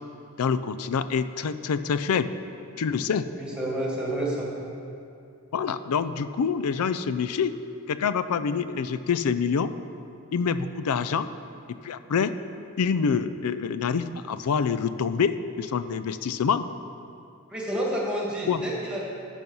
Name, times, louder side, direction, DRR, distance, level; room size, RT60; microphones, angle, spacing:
voice 1, 0.4-2.3 2.8-3.3 5.5-7.5 7.9-9.7 10.3-11.3 11.7-12.3 12.8-16.7 18.5-18.6, left 6 dB, 80° left, 13 dB, 0.4 m, -26 dB
voice 2, 3.3-4.5 17.5-19.0, right 1 dB, 5° right, -4 dB, 1.8 m, -29 dB
12.0 x 5.5 x 5.5 m, 2.6 s
head